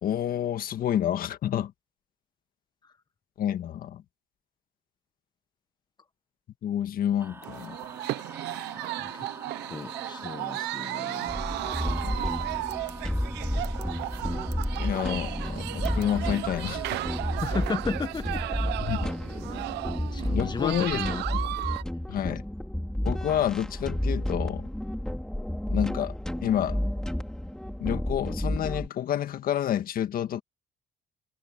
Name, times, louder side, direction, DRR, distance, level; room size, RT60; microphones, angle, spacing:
voice 1, 0.0-1.7 3.4-4.0 6.6-7.8 12.0-12.1 14.8-17.0 18.8-19.1 20.3-21.0 22.1-22.4 23.1-24.6 25.7-26.1 26.4-26.8 27.8-30.4, left 10 dB, 60° left, 1.9 m, -29 dB
sound 1, 7.2-17.4, right 2 dB, 15° right, 5.8 m, -44 dB
sound 2, 7.4-21.8, right 17 dB, 85° right, 0.9 m, -35 dB
voice 2, 9.7-11.6 17.4-18.7 20.1-21.2 22.1-22.3, left 4 dB, 25° left, 1.4 m, -34 dB
sound 3, 11.3-28.9, left 1 dB, 5° left, 4.4 m, -31 dB
cardioid pair, 110°, 17 cm